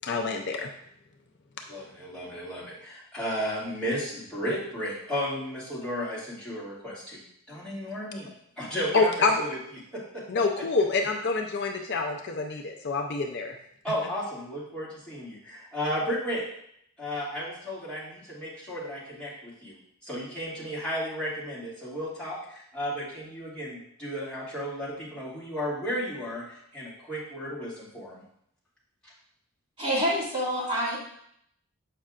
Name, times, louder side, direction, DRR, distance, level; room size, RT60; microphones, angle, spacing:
voice 1, 0.0-0.7 8.9-9.4 10.3-13.5, left 3 dB, 50° left, 3 dB, 0.5 m, -26 dB
voice 2, 1.7-8.3 8.6-9.6 9.9-10.0 13.8-16.4 17.0-28.2, equal, 5° left, -10 dB, 2.2 m, -34 dB
voice 3, 29.8-31.0, equal, 25° right, -8 dB, 2.4 m, -27 dB
7.5 x 5.4 x 2.4 m, 0.71 s
head